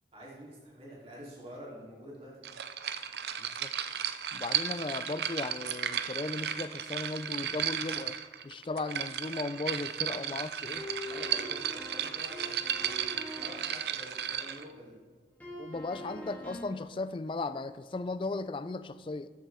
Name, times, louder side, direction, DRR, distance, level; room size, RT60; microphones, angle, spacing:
voice 1, 0.1-2.3 11.1-14.9, equal, 30° right, -6 dB, 3.1 m, -47 dB
sound 1, 2.4-14.7, right 9 dB, 70° right, 0.5 m, -34 dB
voice 2, 3.4-3.7 4.3-8.2 8.4-10.8 15.6-19.3, left 3 dB, 30° left, 13 dB, 0.3 m, -36 dB
sound 2, 10.7-13.7 15.4-16.8, left 1 dB, 10° left, 2.5 m, -43 dB
13.5 x 7.4 x 3.5 m, 1.5 s
head